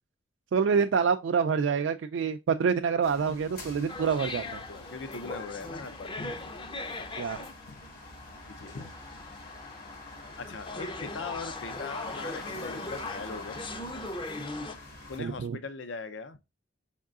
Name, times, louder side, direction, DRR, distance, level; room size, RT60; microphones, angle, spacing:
voice 1, 0.5-4.6 7.2-7.4 15.2-15.6, right 6 dB, 75° right, 0.3 m, -27 dB
sound 1, 3.0-15.2, left 2 dB, 55° left, 1.3 m, -47 dB
sound 2, 3.9-14.8, left 2 dB, 25° left, 0.5 m, -40 dB
voice 2, 4.7-6.4 7.7-7.8 8.5-8.9 10.4-13.7 15.1-16.4, left 4 dB, 70° left, 0.6 m, -40 dB
5.3 x 3.6 x 2.4 m
head